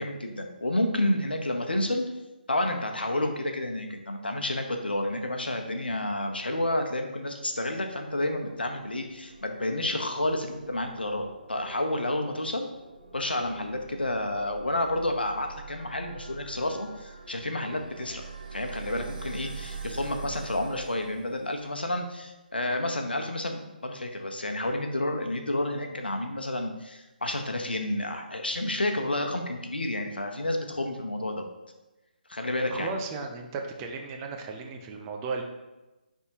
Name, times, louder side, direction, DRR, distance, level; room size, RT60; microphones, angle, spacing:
voice 1, 0.0-2.1 2.5-12.7 13.1-18.2 18.5-31.4 32.3-32.9, left 1 dB, 80° left, 4 dB, 0.9 m, -30 dB
sound 1, 7.8-21.8, right 5 dB, 65° right, 1.6 m, -45 dB
voice 2, 32.6-35.4, right 4 dB, 20° right, 3 dB, 0.6 m, -35 dB
9.5 x 3.6 x 2.8 m, 1.1 s
figure-of-eight pair, 145°, 5 cm